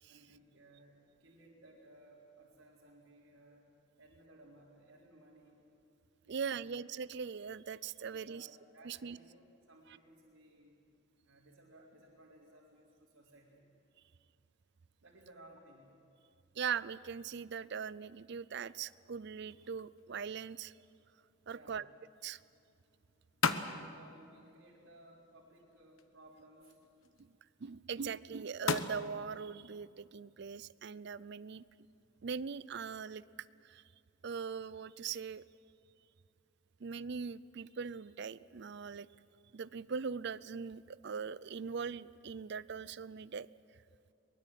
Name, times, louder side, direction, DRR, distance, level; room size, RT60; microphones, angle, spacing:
voice 1, 0.1-3.7 4.0-5.7 6.2-6.6 8.0-10.8 11.2-13.6 15.0-16.0 21.5-21.8 23.7-26.8, right 1 dB, 80° right, -7 dB, 3.9 m, -60 dB
voice 2, 6.3-8.5 8.8-9.2 16.5-20.7 21.5-21.8 22.2-22.4 27.2-27.3 27.6-31.6 32.2-33.2 33.6-33.8 34.2-35.4 36.8-39.1 39.5-43.5, right 6 dB, 55° right, 18 dB, 0.5 m, -41 dB
sound 1, 19.5-32.2, left 5 dB, 85° left, 1.1 m, -43 dB
23.0 x 21.0 x 7.7 m, 2.5 s
head